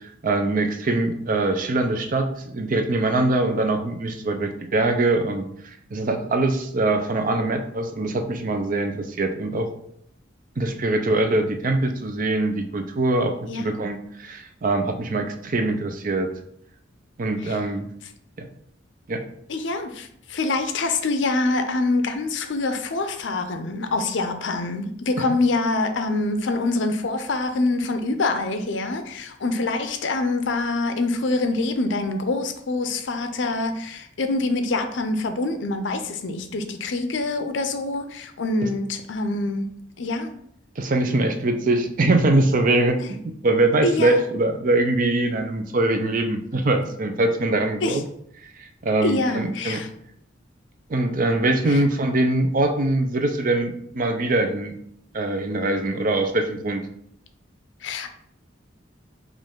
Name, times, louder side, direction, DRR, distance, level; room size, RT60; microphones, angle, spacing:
voice 1, 0.2-2.3 2.5-9.7 10.6-16.3 17.2-17.9 18.4-18.5 19.1-19.2 25.2-25.3 40.8-48.0 48.6-49.8 50.9-54.7 55.1-56.8, right 2 dB, 45° right, 0.5 m, -23 dB
voice 2, 19.5-39.7 40.0-40.3 43.8-44.2 47.8-48.0 49.0-49.9 51.7-51.8 57.8-58.1, left 2 dB, 70° left, 0.5 m, -25 dB
5.2 x 2.5 x 3.7 m
head